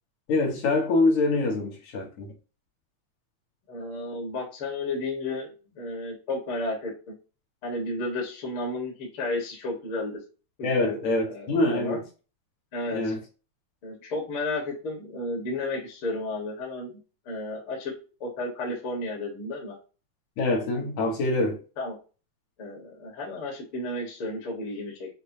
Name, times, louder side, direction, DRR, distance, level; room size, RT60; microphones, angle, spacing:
voice 1, 0.3-2.3 10.6-12.0 12.9-13.2 20.4-21.6, left 2 dB, 65° left, 2.6 m, -25 dB
voice 2, 3.7-5.5 5.7-6.9 7.6-10.2 10.6-12.0 12.7-13.2 13.8-17.0 17.3-17.9 18.2-19.8 21.8-22.0 22.6-25.1, left 2 dB, 50° left, 1.9 m, -32 dB
7.1 x 2.4 x 2.7 m
omnidirectional pair, 3.6 m